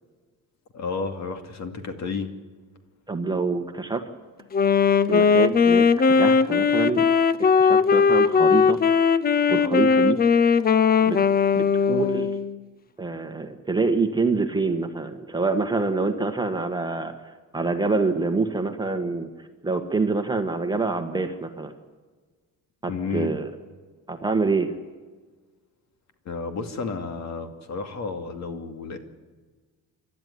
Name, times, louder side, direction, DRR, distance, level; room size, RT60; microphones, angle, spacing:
voice 1, 0.7-2.3 22.9-23.3 26.3-29.0, left 4 dB, 55° left, 7 dB, 2.5 m, -31 dB
voice 2, 3.1-4.0 5.1-7.0 7.6-8.8 9.5-10.2 11.0-11.2 11.5-12.3 13.0-17.1 17.5-21.7 22.8-23.5 24.1-24.7, right 3 dB, 15° right, 6 dB, 1.5 m, -26 dB
Wind instrument woodwind instrument, 4.5-12.6, left 5 dB, 25° left, 0.6 m, -19 dB
27.5 x 12.5 x 9.6 m, 1.4 s
cardioid pair, 150°, 34 cm